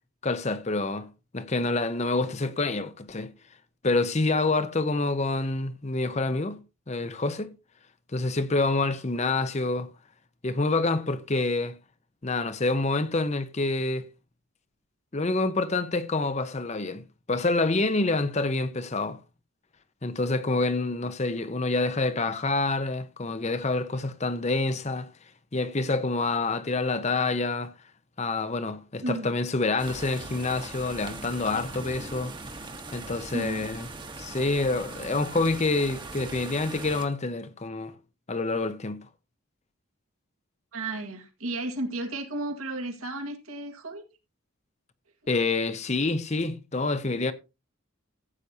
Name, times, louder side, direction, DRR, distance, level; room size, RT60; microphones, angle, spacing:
voice 1, 0.2-1.1 1.3-3.3 3.8-6.6 6.9-7.5 8.1-9.9 10.4-11.7 12.2-14.1 15.1-19.2 20.0-25.1 25.5-27.7 28.2-32.4 32.9-33.9 34.1-37.9 38.3-39.0 45.3-47.3, left 3 dB, 30° left, 0.7 m, -27 dB
sound 1, 29.8-37.1, right 3 dB, 20° right, 1.1 m, -40 dB
voice 2, 33.3-33.7 40.7-44.0, right 2 dB, 85° right, 1.9 m, -33 dB
15.0 x 8.2 x 2.8 m
head